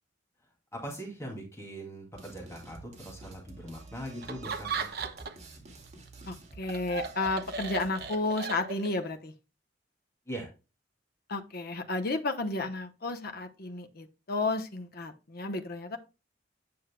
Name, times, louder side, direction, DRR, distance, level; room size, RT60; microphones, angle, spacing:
voice 1, 0.7-4.9 10.3-10.5, right 1 dB, 15° left, 2.5 m, -41 dB
sound 1, 2.1-8.1, right 3 dB, 35° right, 2.0 m, -50 dB
Laughter, 4.2-5.5 5.9-9.1, right 5 dB, 55° right, 1.0 m, -37 dB
voice 2, 6.3-9.3 11.3-16.0, left 2 dB, 55° left, 0.9 m, -32 dB
9.5 x 6.3 x 2.2 m
head